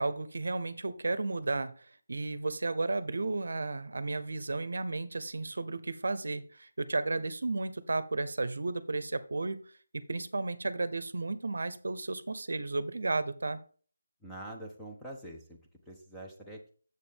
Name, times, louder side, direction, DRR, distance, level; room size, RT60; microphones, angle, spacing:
voice 1, 0.0-9.6 9.9-13.6, right 3 dB, 70° right, 15 dB, 0.8 m, -33 dB
voice 2, 14.2-15.6 15.9-16.7, right 1 dB, ahead, -3 dB, 0.9 m, -45 dB
7.5 x 6.2 x 3.6 m, 0.41 s
figure-of-eight pair, 170°, 0 cm